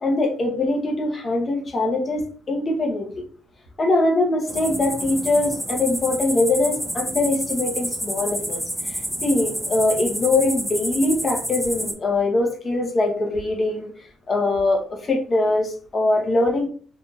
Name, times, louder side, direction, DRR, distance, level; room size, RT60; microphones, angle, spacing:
voice 1, 0.0-3.2 3.8-13.9 14.3-16.7, left 2 dB, 40° left, 2 dB, 0.9 m, -22 dB
sound 1, 4.5-11.9, equal, ahead, 0.7 m, -29 dB
4.0 x 2.7 x 2.4 m, 0.43 s
cardioid pair, 90°, 0 cm